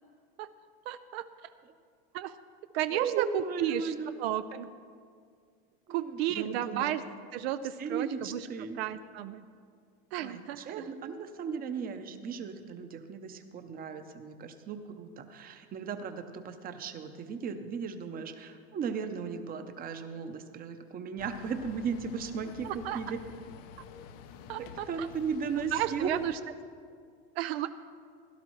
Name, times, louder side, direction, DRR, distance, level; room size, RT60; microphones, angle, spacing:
voice 1, 0.9-1.2 2.1-2.4 2.7-3.9 4.2-4.7 5.9-7.0 7.3-8.5 8.8-9.4 10.1-10.9 22.6-23.0 24.5-25.1 25.6-26.4 27.4-27.7, right 12 dB, 75° right, 11 dB, 0.5 m, -33 dB
voice 2, 2.9-4.1 5.9-7.0 7.8-8.8 10.2-23.2 24.6-26.1, right 6 dB, 30° right, 8 dB, 0.8 m, -36 dB
sound 1, 21.2-26.4, left 6 dB, 65° left, 0.8 m, -49 dB
16.5 x 11.5 x 3.1 m, 2.2 s
supercardioid pair, 125°, 31 cm